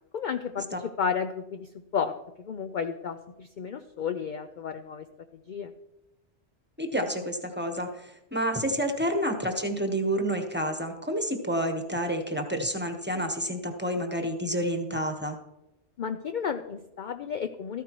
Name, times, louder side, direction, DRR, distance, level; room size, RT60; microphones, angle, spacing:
voice 1, 0.1-0.7 1.0-5.0 5.5-5.7 16.0-17.8, left 7 dB, 55° left, 8 dB, 0.6 m, -32 dB
voice 2, 6.8-15.4, equal, 10° right, 4 dB, 1.0 m, -29 dB
13.5 x 13.5 x 3.1 m, 0.93 s
omnidirectional pair, 1.2 m